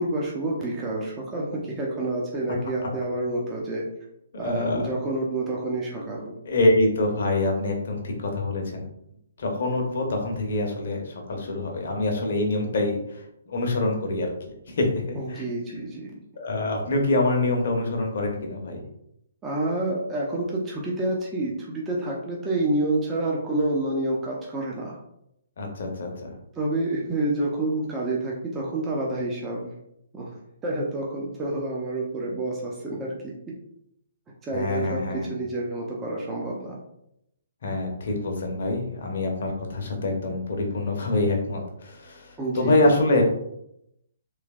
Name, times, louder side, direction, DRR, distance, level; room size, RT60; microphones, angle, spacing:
voice 1, 0.0-3.8 4.4-6.4 15.2-16.1 19.4-25.0 26.5-29.7 30.1-30.4 30.6-33.6 34.4-36.8 42.4-42.8, right 2 dB, 15° right, -3 dB, 0.6 m, -28 dB
voice 2, 4.3-5.0 6.5-8.9 9.4-14.3 14.7-15.4 16.4-18.8 25.6-26.3 34.5-35.3 37.6-43.2, left 2 dB, 55° left, 2 dB, 0.8 m, -25 dB
3.2 x 3.2 x 2.4 m, 0.78 s
figure-of-eight pair, 130°, 0 cm